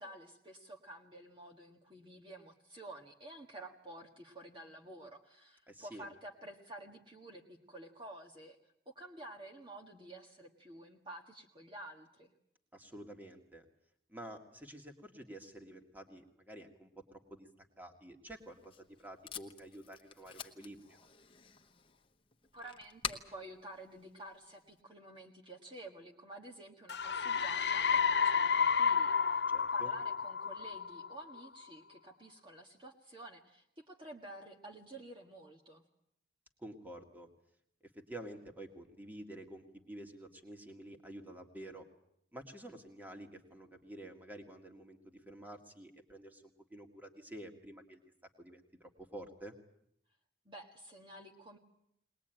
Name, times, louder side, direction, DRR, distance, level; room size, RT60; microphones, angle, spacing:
voice 1, 0.0-12.3 22.5-29.4 29.7-35.8 50.5-51.6, right 1 dB, 30° right, 1 dB, 1.7 m, -51 dB
voice 2, 5.7-6.1 12.7-13.6 14.1-21.1 29.5-29.9 36.6-37.3 37.9-41.8 42.3-46.4 46.7-48.0 48.4-49.5, right 1 dB, 10° right, 3 dB, 2.0 m, -50 dB
Packing tape duct tape, 18.3-24.8, left 7 dB, 30° left, 1.1 m, -48 dB
sound 1, 26.9-31.5, left 6 dB, 75° left, 0.9 m, -31 dB
21.5 x 20.5 x 9.1 m, 0.74 s
head